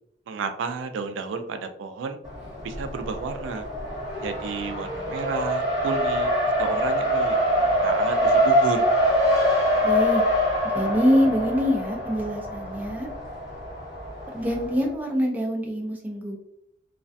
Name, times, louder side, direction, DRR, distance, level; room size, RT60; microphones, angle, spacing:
voice 1, 0.3-2.2 2.6-3.7 4.2-7.4 7.8-8.9, right 4 dB, 85° right, 8 dB, 0.3 m, -31 dB
Race car auto racing, 2.2-14.9, equal, 20° left, 1.2 m, -24 dB
voice 2, 9.8-10.2 10.7-13.1 14.3-16.4, equal, 10° right, -1 dB, 0.4 m, -24 dB
2.4 x 2.1 x 2.5 m, 0.75 s
head